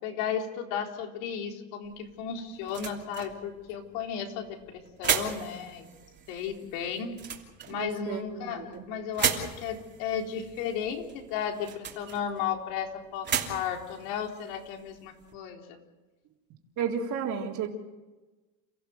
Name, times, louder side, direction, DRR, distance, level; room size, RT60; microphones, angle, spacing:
voice 1, 0.0-4.6 5.0-5.9 6.3-7.2 7.6-15.8, left 7 dB, 65° left, 3 dB, 4.0 m, -34 dB
sound 1, 1.8-15.3, right 7 dB, 25° right, 3.0 m, -37 dB
voice 2, 7.7-8.8 16.8-17.7, right 7 dB, 40° right, 1 dB, 3.6 m, -33 dB
29.5 x 15.5 x 7.9 m, 1.2 s
supercardioid pair, 145°, 43 cm